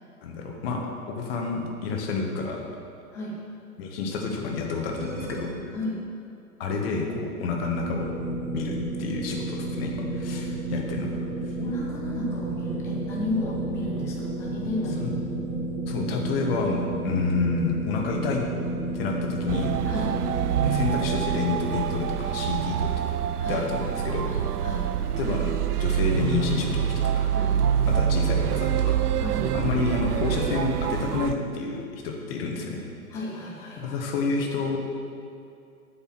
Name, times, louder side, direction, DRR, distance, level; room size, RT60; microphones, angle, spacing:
voice 1, 0.2-2.7 3.8-5.5 6.6-8.1 8.5-11.2 15.0-15.1 15.9-18.4 18.9-19.8 20.6-23.2 23.5-24.3 25.2-27.3 27.9-29.0 29.5-32.8 33.8-34.8, left 4 dB, 40° left, 1 dB, 1.6 m, -29 dB
sound 1, 4.9-5.6 7.8-21.8, right 2 dB, 50° right, 2.3 m, -31 dB
voice 2, 5.7-6.0 11.6-15.2 19.9-20.2 23.4-23.7 24.3-24.9 27.3-27.6 29.2-29.5 33.1-34.0, left 1 dB, 5° left, -3 dB, 0.4 m, -33 dB
sound 2, 19.5-31.3, right 9 dB, 90° right, 0.6 m, -26 dB
8.5 x 5.5 x 7.8 m, 2.5 s
hypercardioid pair, 130°, 45 cm